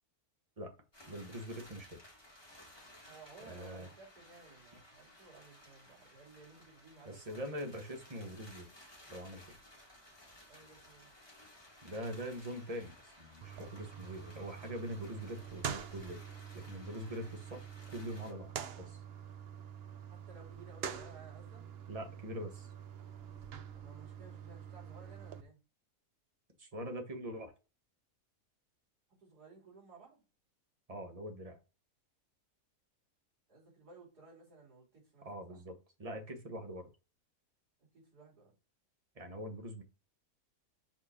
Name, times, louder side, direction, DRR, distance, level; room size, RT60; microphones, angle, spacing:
sound 1, 0.9-18.3, left 1 dB, 15° left, 1.8 m, -58 dB
voice 1, 1.1-2.0 3.5-3.9 7.1-8.7 9.1-9.4 11.8-16.2 16.5-17.7 17.9-19.0 21.9-22.7 26.6-27.5 30.9-31.6 35.2-35.7 36.0-36.9 39.1-39.8, equal, 25° right, 1.3 m, -43 dB
voice 2, 3.1-7.5 10.5-11.1 20.1-21.7 23.7-25.6 29.2-30.2 33.5-35.6 37.8-38.5, right 4 dB, 85° right, 4.1 m, -57 dB
sound 2, 13.4-25.4, right 8 dB, 55° right, 0.7 m, -46 dB
6.1 x 4.7 x 4.4 m
omnidirectional pair, 1.6 m